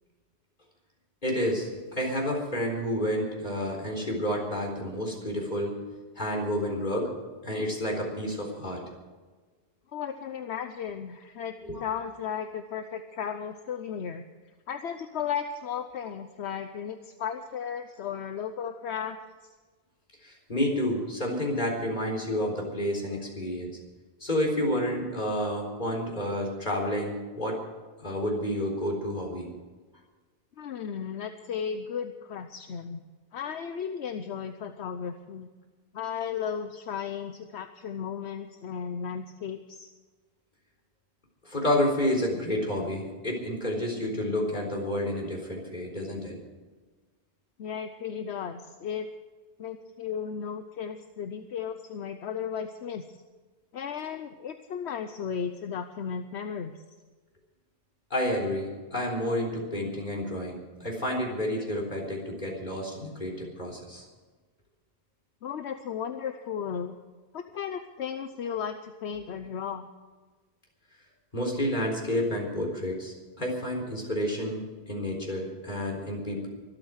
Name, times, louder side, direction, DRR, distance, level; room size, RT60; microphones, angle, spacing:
voice 1, 1.2-5.8 6.2-7.1 7.4-8.8 11.6-11.8 20.2-23.8 24.2-27.6 28.0-29.5 41.4-46.3 58.1-64.1 71.3-76.5, left 1 dB, 45° left, 0 dB, 4.2 m, -30 dB
voice 2, 9.9-11.5 11.8-14.2 14.7-19.2 30.6-33.0 33.3-35.5 35.9-39.9 47.6-49.1 49.6-53.0 53.7-56.8 65.4-67.0 67.3-69.9, left 7 dB, 75° left, 8 dB, 1.1 m, -35 dB
24.0 x 8.9 x 6.4 m, 1.3 s
omnidirectional pair, 1.1 m